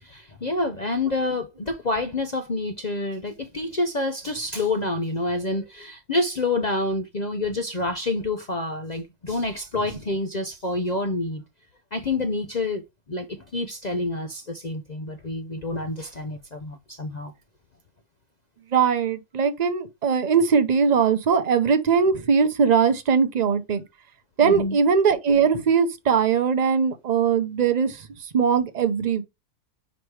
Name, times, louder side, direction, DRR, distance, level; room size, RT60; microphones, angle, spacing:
voice 1, 0.0-11.4 11.9-12.8 13.1-13.3 13.5-17.3 24.4-24.8, left 2 dB, 60° left, 0.4 m, -28 dB
voice 2, 18.7-23.8 24.4-29.2, right 6 dB, 45° right, 0.5 m, -21 dB
5.1 x 4.7 x 4.7 m
omnidirectional pair, 1.7 m